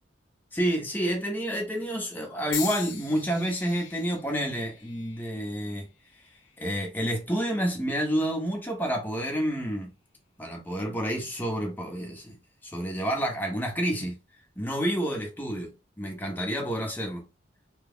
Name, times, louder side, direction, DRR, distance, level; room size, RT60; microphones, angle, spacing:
voice 1, 0.5-5.9 6.6-9.9 10.4-12.4 12.6-14.1 14.6-15.7 16.0-17.3, equal, 10° left, 0.9 m, -29 dB
sound 1, 2.5-6.7 7.4-7.8 8.8-8.9, left 7 dB, 75° left, 0.8 m, -40 dB
3.0 x 2.2 x 3.6 m
head